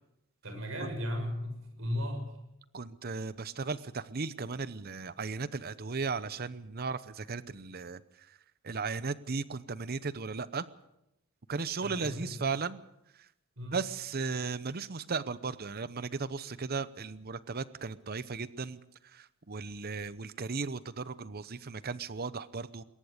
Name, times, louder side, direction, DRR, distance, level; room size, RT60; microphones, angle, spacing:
voice 1, 0.4-2.3 11.8-12.5 13.6-13.8, equal, 70° right, 6 dB, 6.2 m, -36 dB
voice 2, 2.7-8.0 8.6-10.6 11.5-12.8 13.7-18.8 19.1-22.8, right 4 dB, 50° right, 16 dB, 0.8 m, -36 dB
21.5 x 18.5 x 6.6 m, 0.85 s
head